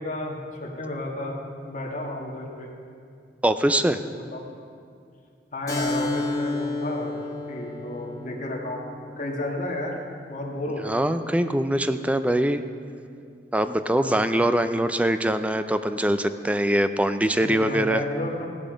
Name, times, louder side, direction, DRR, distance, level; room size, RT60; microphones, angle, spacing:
voice 1, 0.0-1.4 1.6-2.7 4.1-4.4 5.5-7.2 7.5-8.8 9.2-10.0 10.2-11.0 13.9-14.2 17.4-18.5, left 1 dB, 45° left, -1 dB, 2.0 m, -32 dB
voice 2, 3.4-4.0 10.8-12.6 13.5-18.0, right 1 dB, 10° right, 10 dB, 0.5 m, -23 dB
Keyboard (musical), 5.7-10.8, left 2 dB, 20° left, 2.4 m, -32 dB
16.0 x 10.5 x 5.1 m, 2.3 s
head